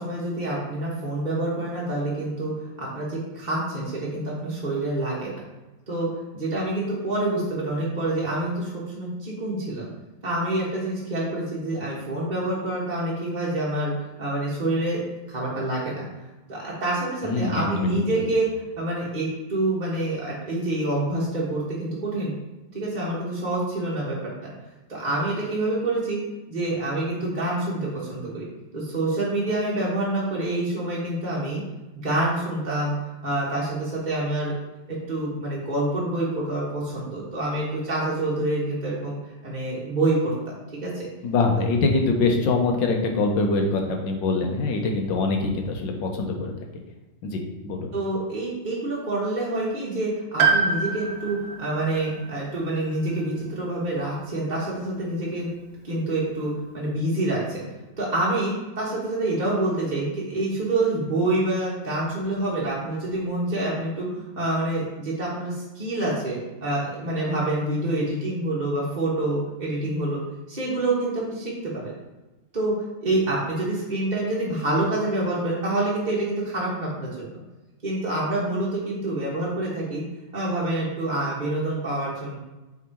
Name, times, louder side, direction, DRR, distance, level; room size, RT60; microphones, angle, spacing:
voice 1, 0.0-5.3 5.9-6.1 6.3-9.9 10.2-13.9 14.2-15.0 15.3-16.0 16.5-18.5 18.8-22.3 22.7-24.2 24.9-26.2 26.5-28.4 28.7-31.6 31.9-32.9 33.2-34.5 34.9-39.2 39.4-41.1 47.9-55.5 55.8-57.6 58.0-70.2 70.5-71.9 72.5-72.7 73.0-77.3 77.8-80.0 80.3-82.4, right 2 dB, 25° right, -7 dB, 1.3 m, -27 dB
voice 2, 17.2-18.2 41.2-46.7 47.2-47.9, left 3 dB, 65° left, 2 dB, 1.5 m, -24 dB
Piano, 50.4-54.3 54.5-54.6 55.8-55.9, right 4 dB, 70° right, 1.5 m, -27 dB
7.6 x 3.8 x 4.5 m, 1.1 s
omnidirectional pair, 2.3 m